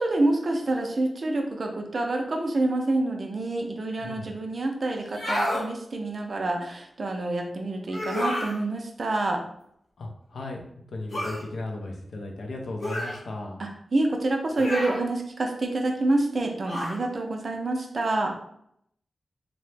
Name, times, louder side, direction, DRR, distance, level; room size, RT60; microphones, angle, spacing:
voice 1, 0.0-9.4 13.6-18.3, right 2 dB, 40° right, 3 dB, 0.4 m, -27 dB
voice 2, 4.0-4.3 10.0-13.6 14.5-14.7, left 2 dB, 70° left, 1 dB, 0.5 m, -36 dB
sound 1, 5.0-5.7 7.9-8.6 11.1-11.4 12.8-13.2 14.6-15.0 16.6-17.0, left 1 dB, 55° left, 0.9 m, -29 dB
2.8 x 2.1 x 3.2 m, 0.70 s
wide cardioid pair, 175°, 0 cm